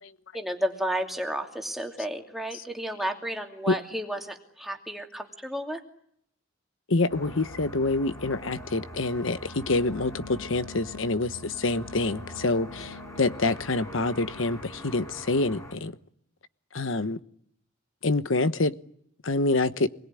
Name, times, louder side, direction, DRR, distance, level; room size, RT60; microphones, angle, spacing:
voice 1, 0.3-5.8, equal, ahead, 2.7 m, -32 dB
voice 2, 6.9-15.9 16.7-17.2 18.0-18.7 19.2-19.9, left 2 dB, 80° left, 1.2 m, -26 dB
sound 1, 7.1-15.8, left 1 dB, 15° left, 4.8 m, -42 dB
27.0 x 21.5 x 9.9 m
head